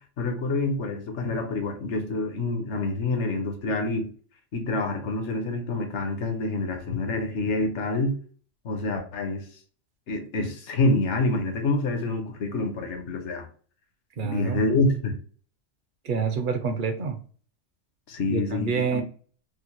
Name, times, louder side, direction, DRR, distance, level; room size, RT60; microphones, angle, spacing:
voice 1, 0.2-4.1 4.5-8.2 8.6-9.4 10.1-13.5 14.2-15.2 18.1-19.0, left 2 dB, 70° left, 1.0 m, -27 dB
voice 2, 14.2-14.7 16.0-17.2 18.3-19.0, right 5 dB, 55° right, 0.6 m, -27 dB
4.7 x 2.0 x 2.9 m
omnidirectional pair, 1.3 m